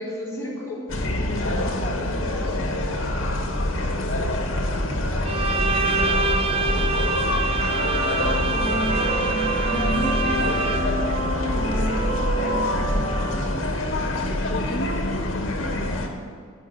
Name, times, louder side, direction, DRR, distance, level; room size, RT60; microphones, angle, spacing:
voice 1, 0.0-2.7, left 1 dB, 15° left, -5 dB, 3.6 m, -35 dB
sound 1, 0.9-16.1, left 1 dB, 65° left, 2.1 m, -25 dB
voice 2, 1.3-2.0 2.8-3.0 5.3-6.7 7.1-7.5 8.9-10.6 11.7-12.1 12.4-12.7 13.3-13.7 14.2-15.0 15.3-16.2, left 1 dB, 40° left, 2 dB, 2.1 m, -35 dB
Bowed string instrument, 5.2-11.1, right 3 dB, 30° right, 1.0 m, -26 dB
sound 2, 7.0-14.0, right 2 dB, 55° right, 3.0 m, -29 dB
18.5 x 6.8 x 10.0 m, 2.1 s
head